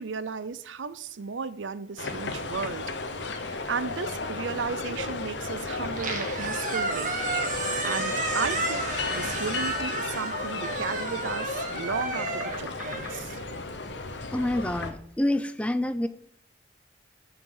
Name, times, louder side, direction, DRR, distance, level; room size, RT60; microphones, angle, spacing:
voice 1, 0.0-7.2 7.5-13.4, right 5 dB, 85° right, 0.6 m, -35 dB
sound 1, 2.0-14.9, left 3 dB, 70° left, 1.1 m, -34 dB
Squeak, 5.8-14.1, right 3 dB, 45° right, 1.6 m, -32 dB
voice 2, 14.3-16.1, left 1 dB, 5° left, 0.5 m, -27 dB
12.5 x 5.8 x 5.5 m
head